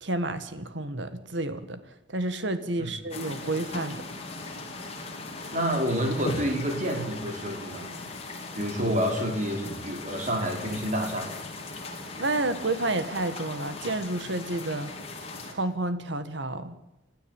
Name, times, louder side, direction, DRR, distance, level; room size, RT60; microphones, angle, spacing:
voice 1, 0.0-1.8 2.1-4.1 12.2-14.9 15.5-16.7, right 2 dB, 65° right, 11 dB, 1.9 m, -30 dB
sound 1, 3.1-15.5, left 2 dB, 30° left, 3.6 m, -39 dB
voice 2, 5.5-7.9 8.6-11.3, equal, 40° right, 3 dB, 4.6 m, -28 dB
29.5 x 13.0 x 9.1 m, 0.95 s
head